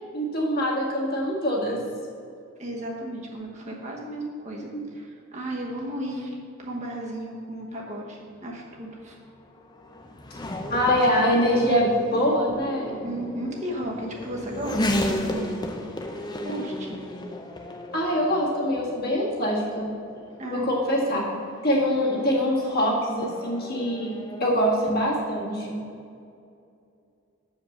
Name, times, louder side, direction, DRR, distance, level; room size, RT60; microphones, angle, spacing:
voice 1, 0.1-1.8 4.7-4.8 10.7-13.0 17.9-19.9 20.5-21.2 21.6-24.1 24.4-25.8, equal, 45° left, -3 dB, 1.8 m, -24 dB
voice 2, 2.6-9.2 13.0-15.7 16.0-17.0 20.4-21.3, right 1 dB, 35° right, -2 dB, 1.1 m, -35 dB
Race car auto racing / Accelerating revving vroom, 8.4-24.6, left 1 dB, 20° left, 0.6 m, -35 dB
7.1 x 5.2 x 6.4 m, 2.5 s
head